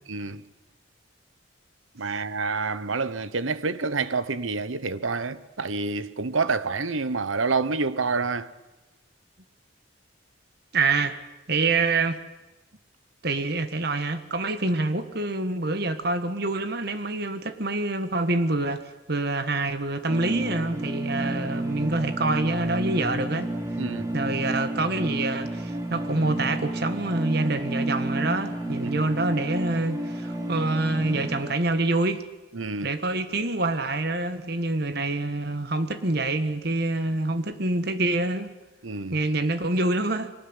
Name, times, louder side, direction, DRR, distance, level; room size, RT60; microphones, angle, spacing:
voice 1, 0.1-0.4 1.9-8.5 23.8-24.1 28.8-29.0 32.5-33.0 38.8-39.2, right 4 dB, 90° right, 1.1 m, -28 dB
voice 2, 10.7-11.2 11.5-12.2 13.2-23.5 24.1-32.2 32.8-38.5 39.1-40.3, right 2 dB, 55° right, 1.6 m, -26 dB
sound 1, 20.1-31.5, right 1 dB, 15° right, 2.9 m, -31 dB
23.5 x 19.0 x 9.9 m
head